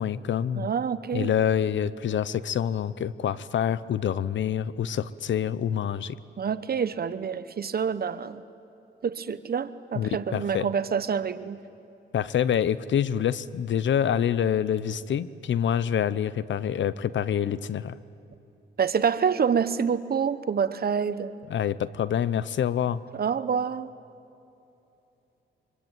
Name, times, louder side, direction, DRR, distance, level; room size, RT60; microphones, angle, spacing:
voice 1, 0.0-0.7 1.1-6.2 9.9-10.7 12.1-18.0 21.5-23.0, left 9 dB, 70° left, 17 dB, 0.8 m, -26 dB
voice 2, 0.5-1.3 6.4-8.4 9.0-11.6 18.8-21.3 23.1-23.9, right 6 dB, 50° right, 13 dB, 1.0 m, -27 dB
24.5 x 23.5 x 9.1 m, 2.9 s
cardioid pair, 85°, 20 cm